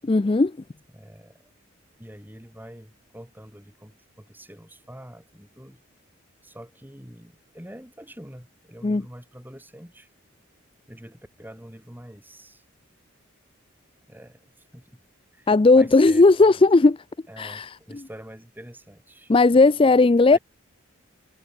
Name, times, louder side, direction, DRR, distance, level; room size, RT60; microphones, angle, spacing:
voice 1, 0.1-0.6 8.8-9.0 15.5-17.0 17.4-18.0 19.3-20.4, left 3 dB, 25° left, 0.4 m, -17 dB
voice 2, 0.9-1.4 2.0-5.8 6.4-10.1 10.9-12.6 14.1-14.5 14.7-15.0 15.3-15.5 15.7-16.7 17.3-19.3 20.3-20.4, equal, 10° right, 5.1 m, -45 dB
head